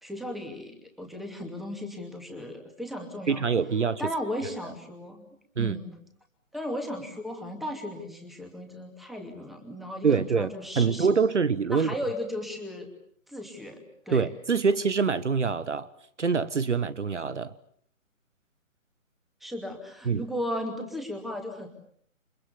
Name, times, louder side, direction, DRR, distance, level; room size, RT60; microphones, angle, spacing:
voice 1, 0.0-3.4 4.0-5.3 5.6-6.0 6.5-11.1 11.7-12.9 13.3-14.3 19.4-21.7, left 1 dB, ahead, 4 dB, 2.6 m, -36 dB
voice 2, 3.3-4.0 5.6-5.8 10.0-11.9 14.1-15.9 16.2-17.5 20.1-20.2, right 5 dB, 60° right, 17 dB, 1.3 m, -25 dB
29.5 x 26.5 x 7.1 m, 0.62 s
figure-of-eight pair, 140°, 41 cm